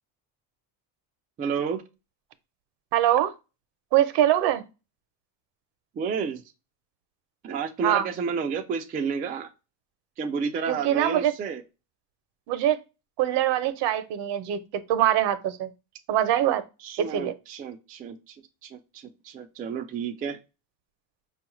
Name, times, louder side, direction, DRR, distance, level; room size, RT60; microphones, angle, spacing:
voice 1, 1.4-1.8 6.0-6.4 7.4-9.5 10.2-11.6 16.5-16.6 16.8-18.3 18.6-20.4, right 6 dB, 20° right, 0.3 m, -31 dB
voice 2, 2.9-3.3 3.9-4.6 7.8-8.1 10.7-11.3 12.5-12.8 13.2-14.6 14.9-15.7 16.1-16.6 17.0-17.3, right 11 dB, 65° right, 0.7 m, -23 dB
5.2 x 2.4 x 2.9 m
cardioid pair, 135°, 45 cm